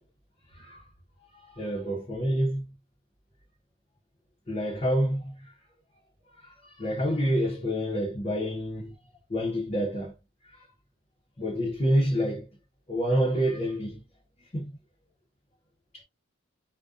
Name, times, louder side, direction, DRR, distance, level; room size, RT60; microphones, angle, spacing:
voice 1, 0.5-0.8 1.3-2.6 4.5-5.5 6.4-9.0 9.3-10.1 10.4-10.7 11.4-12.5 12.9-14.0 14.4-14.7 15.9-16.0, equal, 35° left, 0.7 m, -28 dB
2.4 x 2.2 x 2.4 m
head